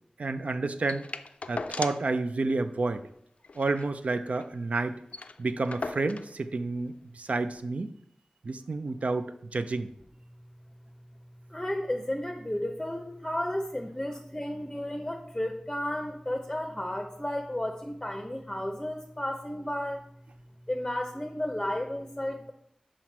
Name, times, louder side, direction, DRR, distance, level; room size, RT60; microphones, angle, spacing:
voice 1, 0.2-1.1 1.5-3.1 3.6-5.0 5.4-7.9 8.4-9.9, right 3 dB, 70° right, 10 dB, 0.5 m, -30 dB
sound 1, 0.9-2.2 2.5-2.6 2.9-3.0 3.4-4.5 4.8-4.9 5.1-6.4 7.2-7.3, left 3 dB, 65° left, 0.3 m, -39 dB
voice 2, 11.5-20.0 20.7-22.5, left 1 dB, 15° left, 4 dB, 0.6 m, -33 dB
5.7 x 5.0 x 4.5 m, 0.74 s
wide cardioid pair, 75°, 2 cm